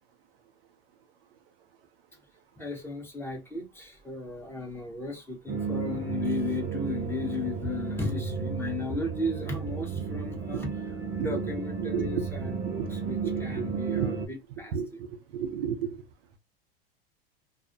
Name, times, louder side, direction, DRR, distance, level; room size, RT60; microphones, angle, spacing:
voice 1, 2.6-10.7 11.2-15.0, left 2 dB, 10° left, 0.8 m, -35 dB
sound 1, 5.5-14.3, right 5 dB, 35° right, 0.7 m, -33 dB
voice 2, 11.8-12.2 13.2-14.1 14.7-16.0, right 7 dB, 70° right, 0.6 m, -32 dB
2.4 x 2.0 x 2.6 m
hypercardioid pair, 100°, 30 cm